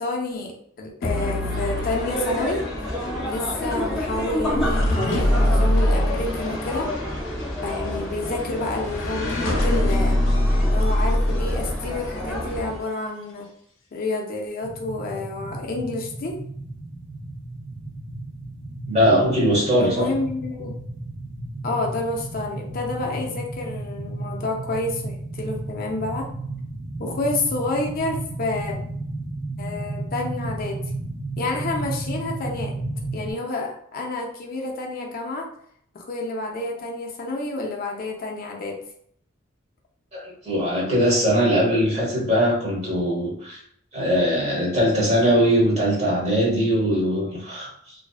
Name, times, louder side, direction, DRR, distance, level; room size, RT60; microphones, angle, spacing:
voice 1, 0.0-2.7 3.2-6.9 7.6-10.2 10.7-13.5 13.9-16.4 19.8-20.7 21.6-26.3 27.0-28.7 29.6-30.8 31.4-32.8 33.1-35.5 35.9-38.8, left 2 dB, 45° left, 1 dB, 0.4 m, -29 dB
sound 1, 1.0-12.3, left 1 dB, 85° left, 0.6 m, -24 dB
sound 2, 1.0-12.8, left 1 dB, 5° right, 0.5 m, -30 dB
sound 3, 14.6-33.3, right 2 dB, 70° right, 0.7 m, -33 dB
voice 2, 18.9-20.1 40.1-43.6 43.9-47.9, equal, 35° right, -5 dB, 1.0 m, -21 dB
2.5 x 2.3 x 2.3 m, 0.65 s
head